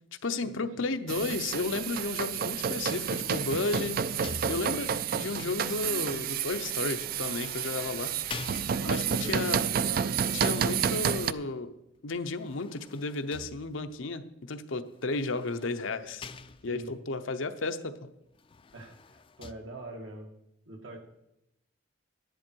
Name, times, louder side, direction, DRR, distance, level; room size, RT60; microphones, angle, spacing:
voice 1, 0.2-4.1 4.5-8.1 8.9-9.6 10.3-11.7 12.0-16.3 16.6-18.1, left 3 dB, 85° left, 9 dB, 0.8 m, -33 dB
sound 1, 1.1-11.3, right 7 dB, 50° right, 0.3 m, -30 dB
sound 2, 2.7-5.1 7.0-9.3 12.1-14.0 15.0-17.0 18.3-19.5, left 4 dB, 25° left, 0.4 m, -46 dB
voice 2, 8.7-10.7 16.7-16.9 18.7-20.3 20.7-21.0, right 2 dB, 85° right, 2 dB, 2.1 m, -43 dB
12.0 x 10.5 x 4.6 m, 0.84 s
head